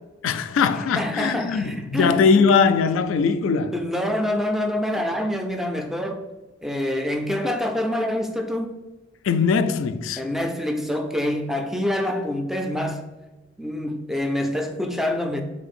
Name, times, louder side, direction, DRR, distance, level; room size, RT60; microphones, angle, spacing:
voice 1, 0.2-3.8 9.2-10.2, left 5 dB, 85° left, 0.3 m, -20 dB
voice 2, 1.0-2.2 3.7-6.2 6.6-8.8 10.2-13.1 13.6-15.4, left 1 dB, ahead, 0.3 m, -26 dB
3.8 x 3.2 x 4.2 m
head